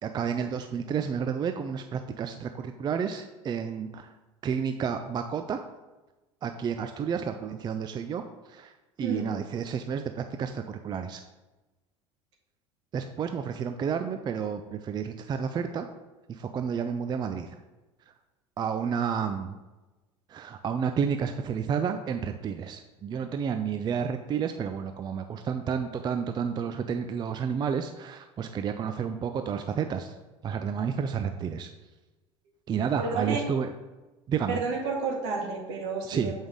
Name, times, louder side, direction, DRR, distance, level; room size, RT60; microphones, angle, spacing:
voice 1, 0.0-4.1 4.4-5.6 6.4-8.7 9.0-11.2 12.9-15.9 16.3-17.6 18.6-19.6 20.3-30.1 30.4-31.7 32.7-33.7 34.3-34.6 36.1-36.3, right 7 dB, 30° right, 7 dB, 0.4 m, -31 dB
voice 2, 33.0-33.4 34.5-36.3, right 4 dB, 65° right, -1 dB, 1.8 m, -31 dB
7.2 x 5.2 x 3.7 m, 1.1 s
hypercardioid pair, 75°, 16 cm